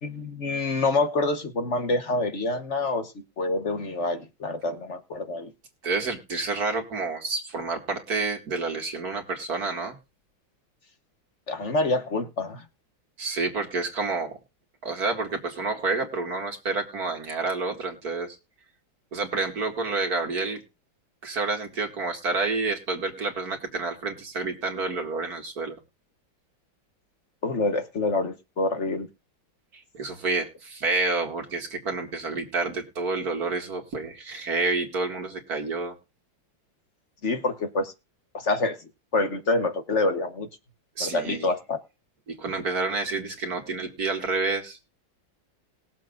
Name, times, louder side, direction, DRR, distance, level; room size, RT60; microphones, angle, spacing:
voice 1, 0.0-5.5 11.5-12.6 27.4-29.1 37.2-37.9 38.3-38.8 39.1-40.5 41.0-41.8, left 2 dB, 45° left, 8 dB, 1.2 m, -27 dB
voice 2, 5.8-10.0 13.2-14.3 14.8-18.4 19.1-20.6 21.2-25.8 29.9-35.9 41.0-41.5 42.3-44.8, right 3 dB, 50° right, 3 dB, 2.5 m, -29 dB
20.5 x 7.6 x 2.5 m, 0.29 s
omnidirectional pair, 2.1 m